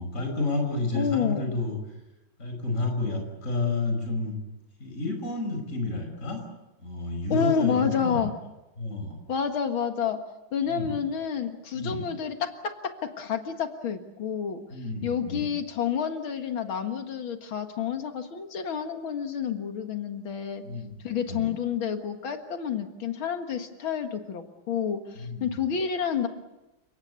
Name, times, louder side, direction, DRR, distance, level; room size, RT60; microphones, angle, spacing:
voice 1, 0.0-1.8 2.4-4.4 4.8-6.4 6.8-8.3 8.8-9.2 10.6-11.0 11.7-12.0 14.7-15.5 20.6-20.9 21.3-21.5 25.2-25.6, left 2 dB, 40° left, 3 dB, 5.9 m, -30 dB
voice 2, 0.9-1.6 7.3-8.3 9.3-10.2 10.5-14.6 15.0-20.6 21.0-26.3, left 7 dB, 85° left, 6 dB, 2.5 m, -29 dB
30.0 x 18.5 x 8.3 m, 0.99 s
omnidirectional pair, 2.2 m